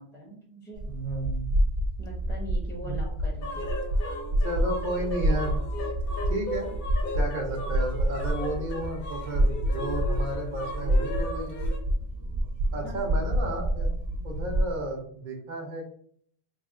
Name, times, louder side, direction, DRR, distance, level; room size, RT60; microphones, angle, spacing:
voice 1, 0.0-0.8 2.0-3.7 12.8-13.2, right 1 dB, 5° left, -1 dB, 0.7 m, -42 dB
sound 1, 0.7-14.8, right 1 dB, 75° right, 1.0 m, -28 dB
voice 2, 0.8-1.5 2.8-3.0 4.4-5.6 6.3-6.7 7.1-11.7 12.7-13.9 14.2-15.8, right 1 dB, 50° right, 1 dB, 0.9 m, -33 dB
sound 2, 3.4-11.8, left 2 dB, 60° left, 0.9 m, -37 dB
3.4 x 2.2 x 3.6 m, 0.63 s
omnidirectional pair, 1.1 m